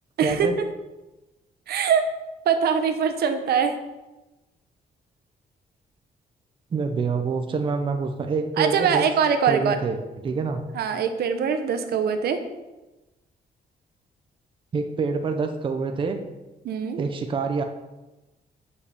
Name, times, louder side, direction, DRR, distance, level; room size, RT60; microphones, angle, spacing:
voice 1, 0.2-0.5 6.7-9.0 9.4-10.0 10.2-10.6 14.7-16.2 17.0-17.6, right 4 dB, 30° right, 5 dB, 0.7 m, -26 dB
voice 2, 1.7-2.0 2.4-3.7 8.6-9.8 10.7-12.4 16.6-17.0, right 7 dB, 80° right, 7 dB, 0.9 m, -22 dB
6.4 x 5.7 x 6.8 m, 1.1 s
wide cardioid pair, 170°, 16 cm